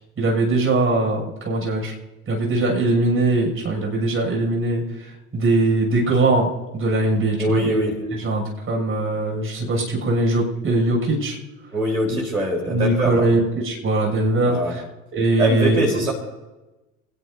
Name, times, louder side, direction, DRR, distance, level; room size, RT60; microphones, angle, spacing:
voice 1, 0.2-1.9 2.3-7.8 8.1-11.4 12.7-14.8 15.1-16.1, right 2 dB, 30° right, 0 dB, 7.0 m, -21 dB
voice 2, 7.4-8.0 11.7-13.2 14.4-14.7 15.4-16.1, right 1 dB, 90° right, 0 dB, 4.1 m, -22 dB
27.5 x 19.0 x 2.7 m, 1.1 s
figure-of-eight pair, 65°, 42 cm